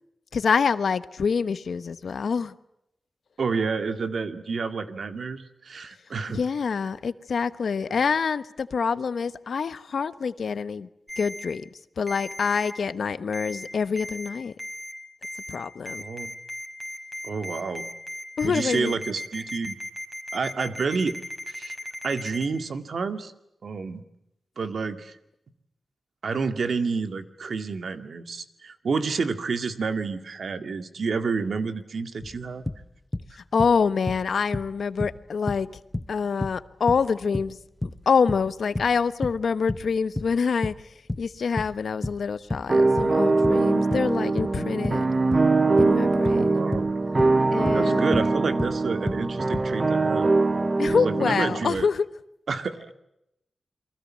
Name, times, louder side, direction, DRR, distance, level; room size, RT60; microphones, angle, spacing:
voice 1, 0.3-2.5 6.3-10.9 11.2-14.5 15.5-16.0 18.4-19.0 33.3-35.7 36.1-37.6 38.1-45.1 45.8-46.6 47.5-48.2 50.8-52.0, left 5 dB, 75° left, 1.1 m, -26 dB
voice 2, 3.4-6.4 16.0-16.3 17.2-17.9 18.4-19.8 20.3-21.2 21.5-21.8 22.0-23.3 23.6-24.0 24.6-25.2 26.2-32.6 46.3-46.9 47.7-50.3 50.9-51.9 52.5-52.9, right 4 dB, 70° right, 2.1 m, -29 dB
Ringtone, 11.1-11.4 12.1-12.7 13.3-13.7 14.0-14.3 14.6-14.9 15.2-15.6 15.9-22.5, left 1 dB, 10° right, 5.0 m, -36 dB
sound 1, 32.2-33.3 33.6-34.7 35.0-40.8 41.1-48.3 48.6-49.7, left 1 dB, 15° left, 1.0 m, -32 dB
sound 2, 42.7-51.6, right 3 dB, 35° right, 0.9 m, -22 dB
29.0 x 23.5 x 7.5 m
wide cardioid pair, 90°, 0 cm